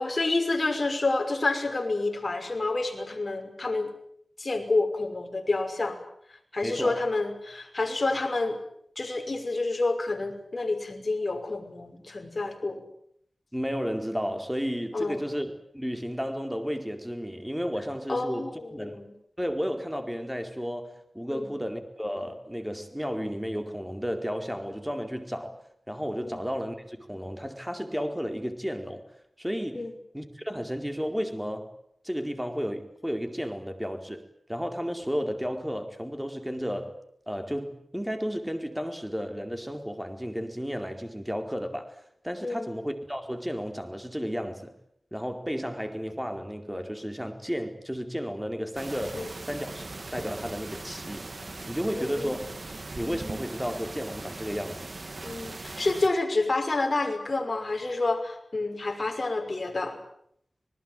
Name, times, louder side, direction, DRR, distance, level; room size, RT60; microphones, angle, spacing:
voice 1, 0.0-3.9 4.4-6.0 6.3-8.6 9.0-12.8 14.9-15.2 18.1-19.1 21.3-21.5 26.2-26.4 29.7-30.0 42.4-42.7 49.1-49.3 51.9-52.4 55.2-60.0, left 2 dB, 45° left, 6.0 m, -29 dB
voice 2, 6.6-7.0 13.5-15.5 15.7-19.0 19.4-25.6 25.9-29.0 29.4-31.7 32.0-34.2 34.5-37.0 37.3-44.7 45.1-51.4 51.7-52.5 53.0-54.9, equal, 5° right, 4.5 m, -33 dB
sound 1, 48.7-56.1, right 3 dB, 50° right, 2.2 m, -40 dB
26.5 x 20.5 x 9.2 m
wide cardioid pair, 70°, 0 cm